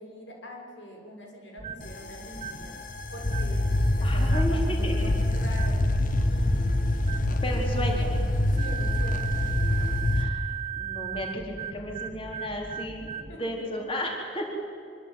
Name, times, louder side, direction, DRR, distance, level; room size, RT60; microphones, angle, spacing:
voice 1, 0.0-2.7 3.1-3.7 3.9-6.6 8.5-9.4 13.3-13.4, equal, 90° left, 1 dB, 6.5 m, -43 dB
sound 1, 1.6-1.9 2.3-2.7 3.3-3.6 4.3-4.6 5.5-5.9 7.0-7.4 8.6-13.4, right 9 dB, 35° right, 1.8 m, -37 dB
sound 2, 1.8-10.3, left 1 dB, 50° left, 1.5 m, -25 dB
voice 2, 4.0-5.1 7.4-8.2 10.1-10.5 10.7-14.5, equal, 30° left, 0 dB, 4.2 m, -33 dB
25.0 x 24.5 x 9.2 m, 2.3 s
head